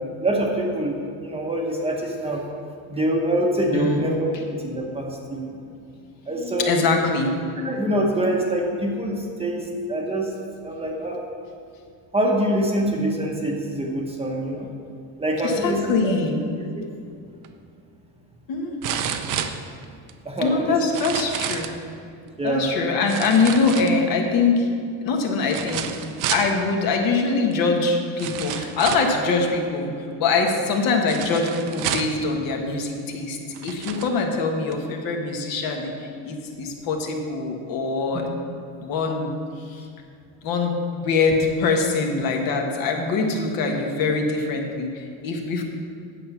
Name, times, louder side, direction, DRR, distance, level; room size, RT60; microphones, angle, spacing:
voice 1, 0.0-2.4 2.9-5.6 6.3-6.7 7.6-10.3 10.6-11.2 12.1-14.7 15.2-16.2 16.7-16.8 20.2-20.8 22.4-22.7, right 1 dB, 15° right, 0 dB, 0.9 m, -25 dB
voice 2, 3.7-4.1 6.4-7.3 15.4-16.4 18.5-18.7 20.4-21.8 22.4-24.7 25.0-25.9 26.3-29.9 30.2-38.3 38.8-39.3 39.7-39.8 40.4-45.6, left 4 dB, 55° left, 2 dB, 1.4 m, -23 dB
sound 1, 17.4-17.5 18.8-20.1 20.8-21.8 23.1-24.3 25.5-26.5 27.5-27.6 28.2-29.2 31.1-32.2 33.0-33.1 33.5-34.1 34.7-34.8, right 9 dB, 50° right, 0.7 m, -30 dB
9.2 x 7.1 x 5.9 m, 2.4 s
cardioid pair, 155°, 41 cm